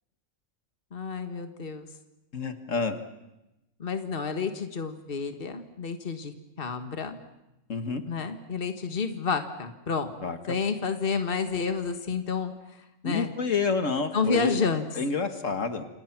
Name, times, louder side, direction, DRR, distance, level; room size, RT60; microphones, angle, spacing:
voice 1, 0.9-1.9 3.8-7.2 8.1-10.2 10.5-12.5 13.0-13.3 14.1-14.9, left 5 dB, 45° left, 7 dB, 1.8 m, -30 dB
voice 2, 2.3-3.0 7.7-8.0 10.2-10.4 13.0-14.6 15.0-15.9, left 4 dB, 75° left, 8 dB, 2.1 m, -28 dB
28.0 x 28.0 x 6.1 m, 0.94 s
omnidirectional pair, 1.3 m